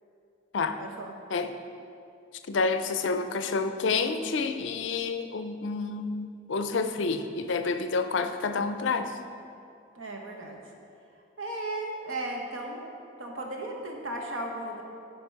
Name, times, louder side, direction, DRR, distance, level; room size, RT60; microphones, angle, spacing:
voice 1, 0.8-1.1 9.9-10.6 11.4-12.9 13.2-14.8, right 1 dB, 85° right, 1 dB, 1.2 m, -35 dB
voice 2, 2.5-9.1, left 4 dB, 70° left, 8 dB, 0.5 m, -29 dB
9.6 x 5.2 x 4.7 m, 2.6 s
head